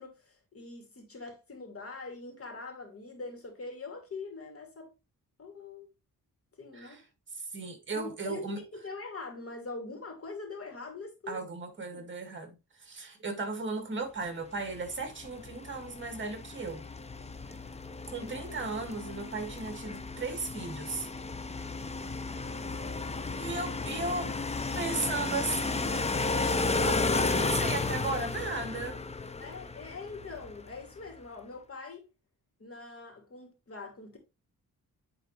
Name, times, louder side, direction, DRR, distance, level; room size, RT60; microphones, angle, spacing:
voice 1, 0.0-4.9 5.4-5.9 6.6-7.0 7.9-11.4 11.9-12.0 29.4-32.1 32.6-34.2, left 3 dB, 40° left, 2.8 m, -43 dB
voice 2, 7.3-8.6 11.3-16.8 18.1-21.1 23.4-24.4 24.7-29.0, right 3 dB, 35° right, 2.2 m, -36 dB
sound 1, 14.7-30.8, left 3 dB, 20° left, 0.6 m, -33 dB
10.0 x 4.0 x 3.2 m
cardioid pair, 105°, 34 cm